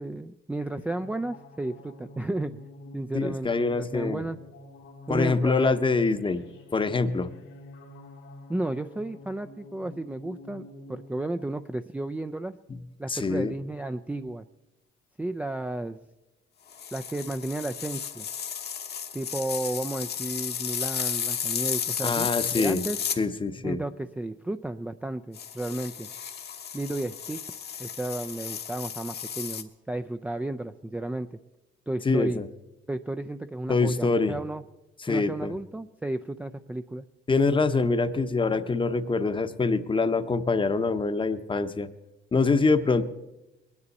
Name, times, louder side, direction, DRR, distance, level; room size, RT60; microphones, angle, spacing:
voice 1, 0.0-2.7 2.9-4.4 5.1-5.8 8.5-10.6 10.9-12.5 13.0-14.4 15.2-16.0 16.9-18.3 19.1-23.0 23.6-26.1 26.7-27.4 27.8-31.4 31.9-32.4 32.9-34.6 35.1-37.0, right 2 dB, 5° right, 6 dB, 0.4 m, -33 dB
sound 1, 0.6-11.5, left 2 dB, 85° left, 2.4 m, -49 dB
voice 2, 3.1-4.2 5.1-6.4 6.7-7.3 13.1-13.5 22.0-22.8 23.2-23.8 32.0-32.5 33.7-34.4 35.0-35.5 37.3-41.9 42.3-43.0, left 3 dB, 25° left, 11 dB, 0.8 m, -25 dB
sound 2, 16.7-23.2 25.3-29.6, left 8 dB, 55° left, 1.1 m, -33 dB
21.5 x 9.8 x 4.1 m, 0.99 s
cardioid pair, 90°, 20 cm